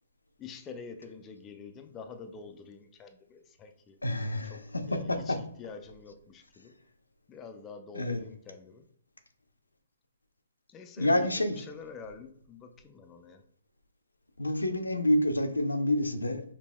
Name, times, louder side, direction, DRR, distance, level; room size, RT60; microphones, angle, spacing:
voice 1, 0.4-4.0 4.4-6.7 7.3-8.8 10.7-13.4, left 5 dB, 20° left, 6 dB, 0.4 m, -47 dB
voice 2, 4.0-5.4 7.9-8.2 11.0-11.6 14.4-16.4, left 1 dB, 85° left, 7 dB, 0.5 m, -28 dB
5.1 x 2.6 x 2.3 m, 0.63 s
figure-of-eight pair, 130°, 0 cm